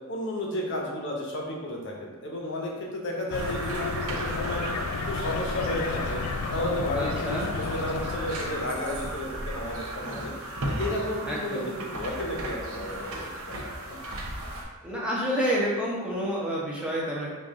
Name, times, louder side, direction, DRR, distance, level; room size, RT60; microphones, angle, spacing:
voice 1, 0.1-4.8 5.1-6.2 6.5-13.7, left 1 dB, 60° left, -1 dB, 0.9 m, -33 dB
sound 1, 3.3-9.1, left 5 dB, 80° left, 0.3 m, -33 dB
sound 2, 3.3-14.6, right 1 dB, 75° right, 0.8 m, -36 dB
voice 2, 6.9-7.5 11.2-11.7 14.8-17.3, equal, 5° right, -5 dB, 0.8 m, -29 dB
5.3 x 2.5 x 3.7 m, 1.4 s
head